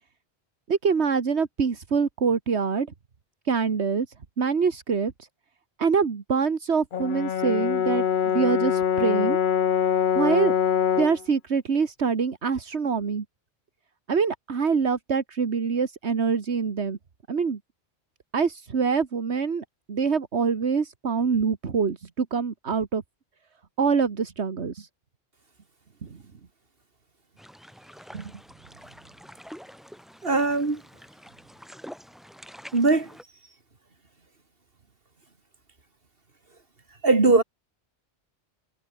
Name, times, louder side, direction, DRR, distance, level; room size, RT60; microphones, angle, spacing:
voice 1, 0.7-2.9 3.5-4.1 4.4-5.1 5.8-9.4 10.1-10.5 11.0-13.2 14.1-17.0 17.3-17.6 18.3-23.0 23.8-24.9 26.0-26.1 28.1-28.3, right 5 dB, 80° right, 1.9 m, -25 dB
Brass instrument, 6.9-11.2, left 8 dB, 55° left, 0.8 m, -24 dB
sound 1, 27.4-33.2, equal, ahead, 5.4 m, -47 dB
voice 2, 30.2-30.8 32.7-33.1 37.0-37.4, right 3 dB, 55° right, 3.1 m, -20 dB
omnidirectional pair, 1.1 m